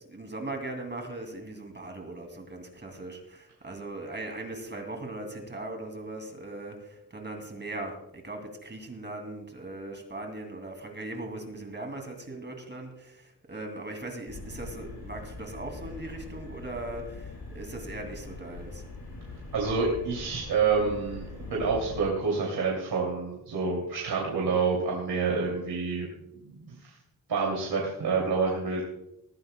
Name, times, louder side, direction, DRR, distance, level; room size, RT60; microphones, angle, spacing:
voice 1, 0.1-18.8 24.5-24.6, right 2 dB, 30° right, 4 dB, 2.4 m, -39 dB
sound 1, 14.3-22.0, left 3 dB, 80° left, 6.2 m, -42 dB
voice 2, 19.5-26.1 26.3-27.0 27.3-28.8, right 4 dB, 75° right, -2 dB, 2.7 m, -28 dB
19.5 x 14.5 x 2.2 m, 0.85 s
wide cardioid pair, 150°, 38 cm